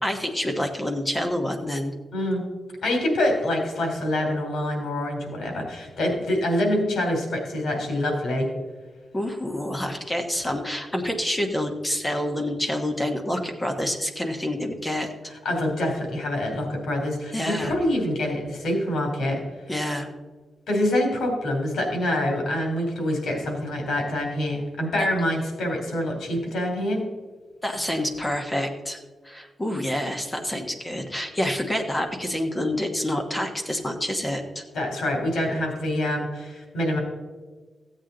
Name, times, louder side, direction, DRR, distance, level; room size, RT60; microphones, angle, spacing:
voice 1, 0.0-1.9 9.1-15.3 17.3-17.7 19.7-20.1 27.6-29.0 29.2-34.6, left 1 dB, 10° left, 3 dB, 1.1 m, -27 dB
voice 2, 2.1-2.4 2.8-8.5 15.4-19.4 20.7-27.0 34.7-37.0, left 1 dB, 90° left, 2 dB, 2.8 m, -25 dB
14.5 x 8.3 x 3.9 m, 1.4 s
wide cardioid pair, 165°, 0 cm